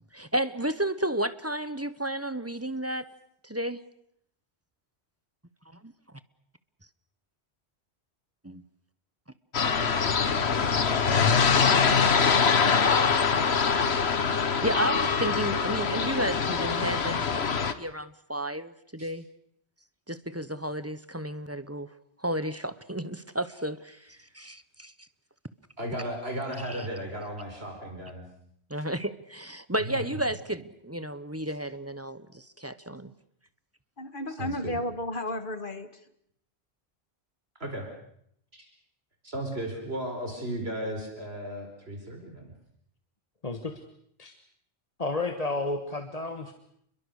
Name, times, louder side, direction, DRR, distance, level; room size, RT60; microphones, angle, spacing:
voice 1, 0.1-3.1 3.4-3.8 5.8-5.9 8.4-8.6 14.6-19.2 20.1-21.9 22.2-24.9 26.7-26.8 28.7-33.1, right 1 dB, 15° right, 13 dB, 1.0 m, -32 dB
sound 1, 9.5-17.7, left 6 dB, 75° left, 1.5 m, -24 dB
voice 2, 11.2-12.3 12.7-13.2 19.0-19.1 25.8-28.2 29.9-30.0 34.4-34.8 37.6-37.9 38.5-38.7 39.2-42.5, right 1 dB, 70° right, 4 dB, 4.8 m, -36 dB
voice 3, 34.0-36.0, left 1 dB, 50° left, 10 dB, 2.0 m, -33 dB
voice 4, 43.4-43.8 44.2-44.3 45.0-46.5, left 3 dB, 35° left, 6 dB, 1.6 m, -31 dB
29.5 x 22.5 x 6.6 m, 0.71 s
omnidirectional pair, 1.1 m